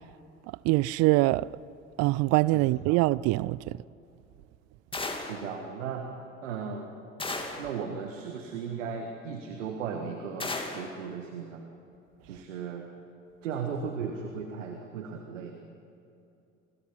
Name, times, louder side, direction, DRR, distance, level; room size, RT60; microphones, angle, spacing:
voice 1, 0.7-1.5 2.0-3.6, right 19 dB, 40° right, 0.5 m, -23 dB
voice 2, 2.5-3.0 5.3-6.1 6.4-6.9 7.6-11.6 12.2-12.9 13.4-15.5, right 6 dB, 70° right, 1.8 m, -36 dB
sound 1, 4.9-5.5 7.2-7.7 10.4-10.9, left 2 dB, 15° left, 2.8 m, -34 dB
29.0 x 22.0 x 5.7 m
figure-of-eight pair, 60°, 39 cm